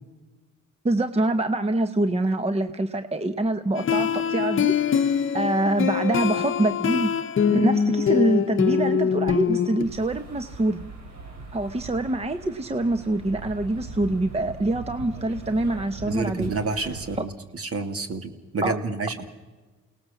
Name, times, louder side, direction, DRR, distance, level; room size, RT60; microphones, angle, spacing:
voice 1, 0.8-4.8 5.3-7.1 7.5-10.9 11.5-16.5 17.2-17.3 18.6-18.8, right 2 dB, 20° right, 10 dB, 1.0 m, -25 dB
sound 1, 3.8-9.8, left 7 dB, 40° left, 0.9 m, -23 dB
sound 2, 9.8-17.2, right 3 dB, 65° right, 5.2 m, -40 dB
voice 2, 16.1-19.3, right 3 dB, 50° right, 7 dB, 2.7 m, -29 dB
29.0 x 19.0 x 7.2 m, 1.3 s
cardioid pair, 90°, 30 cm